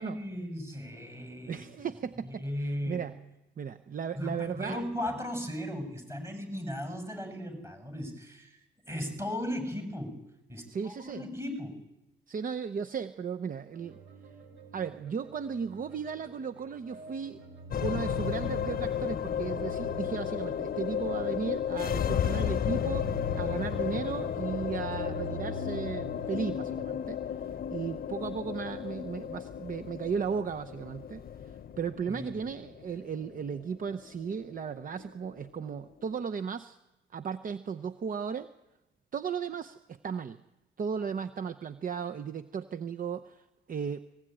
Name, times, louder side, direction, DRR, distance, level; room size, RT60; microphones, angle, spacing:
voice 1, 0.0-1.6 2.3-3.1 4.1-10.2 10.5-11.8 32.1-32.3, left 1 dB, 15° right, 6 dB, 6.6 m, -37 dB
voice 2, 1.5-3.1 3.6-4.8 10.7-11.2 12.3-14.0 14.7-17.4 17.8-27.4 27.7-31.2 31.8-36.8 37.1-38.5 39.1-40.4 40.8-44.0, right 6 dB, 45° right, 10 dB, 0.8 m, -35 dB
sound 1, 13.7-26.3, right 1 dB, 70° right, 6.3 m, -45 dB
sound 2, 17.7-36.2, left 9 dB, 50° left, 0.8 m, -34 dB
20.0 x 19.0 x 9.0 m, 0.97 s
cardioid pair, 90°, 20 cm